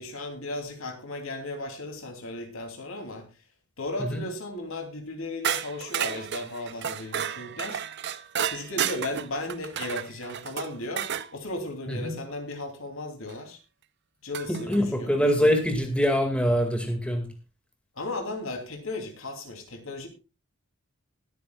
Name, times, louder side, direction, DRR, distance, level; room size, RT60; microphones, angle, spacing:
voice 1, 0.0-3.2 3.8-7.8 8.4-13.6 14.2-15.5 18.0-20.1, left 2 dB, 70° left, 6 dB, 3.0 m, -36 dB
sound 1, 5.4-11.3 13.3-13.4 14.3-14.8, right 9 dB, 55° right, 0.7 m, -32 dB
voice 2, 14.5-17.3, equal, 5° left, 5 dB, 2.0 m, -24 dB
20.5 x 9.3 x 2.4 m, 0.29 s
head